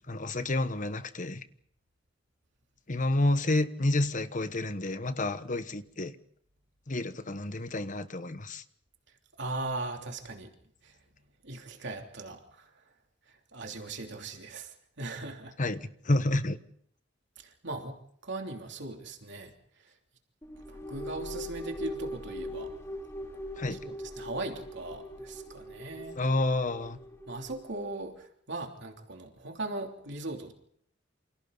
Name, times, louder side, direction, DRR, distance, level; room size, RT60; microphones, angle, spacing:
voice 1, 0.1-1.4 2.9-6.1 6.9-8.6 15.6-16.6 23.6-23.8 26.2-27.0, left 2 dB, 40° left, 1.3 m, -29 dB
voice 2, 9.4-10.5 10.8-11.0 11.4-12.7 13.3-15.5 17.4-17.9 18.2-19.9 20.7-22.7 23.7-26.2 27.3-30.5, right 2 dB, 65° right, 3.1 m, -39 dB
sound 1, 20.4-28.0, left 1 dB, 15° left, 3.2 m, -41 dB
28.5 x 27.0 x 4.1 m
head